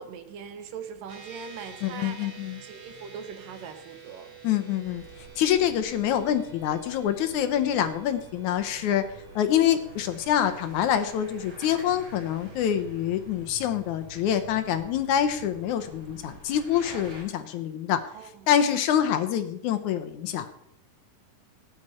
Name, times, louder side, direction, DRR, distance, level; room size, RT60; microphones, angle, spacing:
voice 1, 0.0-2.3 2.6-4.3 18.1-18.5, right 6 dB, 80° right, 8 dB, 2.9 m, -41 dB
sound 1, 1.1-14.7, right 7 dB, 50° right, 3.6 m, -50 dB
voice 2, 1.8-2.6 4.4-5.0 5.4-9.0 9.4-18.0 18.5-20.5, left 10 dB, 70° left, 8 dB, 2.1 m, -26 dB
sound 2, 4.8-17.2, right 2 dB, 30° right, 4.5 m, -48 dB
18.0 x 9.7 x 4.3 m, 0.71 s
omnidirectional pair, 3.9 m